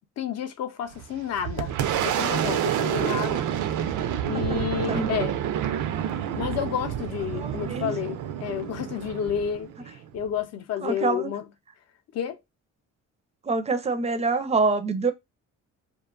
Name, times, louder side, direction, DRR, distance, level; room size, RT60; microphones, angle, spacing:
voice 1, 0.2-1.7 2.0-3.5 4.3-5.4 6.4-11.4 12.1-12.4, left 9 dB, 60° left, 0.6 m, -30 dB
Boom, 0.9-10.3, right 10 dB, 75° right, 0.5 m, -28 dB
voice 2, 7.3-7.9 10.8-11.3 13.4-15.1, right 3 dB, 20° right, 0.4 m, -26 dB
2.5 x 2.3 x 2.3 m
cardioid pair, 90°, 30 cm